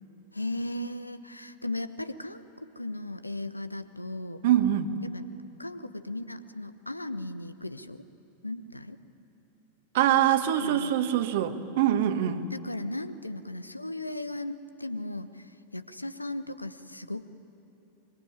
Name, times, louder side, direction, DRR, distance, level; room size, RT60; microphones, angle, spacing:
voice 1, 0.3-2.4 2.8-4.4 5.0-5.3 5.6-8.0 8.4-9.0 10.6-10.9 12.5-15.3 15.7-17.3, left 1 dB, 85° left, 13 dB, 1.0 m, -36 dB
voice 2, 4.4-4.9 9.9-12.4, right 11 dB, 55° right, 8 dB, 1.5 m, -24 dB
23.5 x 23.5 x 9.8 m, 2.9 s
figure-of-eight pair, 90°, 0 cm